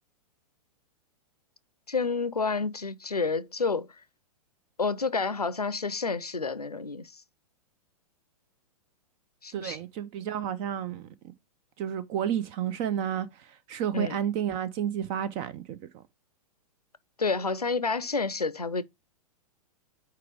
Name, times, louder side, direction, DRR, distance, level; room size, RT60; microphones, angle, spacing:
voice 1, 1.9-3.9 4.8-7.2 9.4-9.8 13.9-14.2 17.2-18.8, left 4 dB, 85° left, 0.6 m, -29 dB
voice 2, 9.5-11.1 11.8-15.8, right 9 dB, 30° right, 0.5 m, -31 dB
4.7 x 4.7 x 4.8 m
figure-of-eight pair, 105°, 19 cm